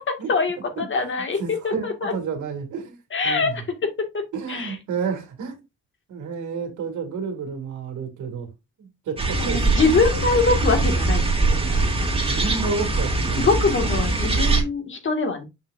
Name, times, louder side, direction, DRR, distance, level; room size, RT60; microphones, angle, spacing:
voice 1, 0.3-1.4 1.6-2.1 3.1-3.5 4.1-4.2 4.5-4.7 9.4-12.1 13.4-15.4, left 4 dB, 40° left, 2.0 m, -23 dB
voice 2, 1.4-3.0 3.2-3.6 4.3-5.5 6.1-8.5 8.8-9.9 12.1-13.6, right 5 dB, 75° right, 2.2 m, -30 dB
sound 1, 9.2-14.6, right 3 dB, 20° right, 2.3 m, -22 dB
7.1 x 5.8 x 2.6 m
cardioid pair, 90°, 30 cm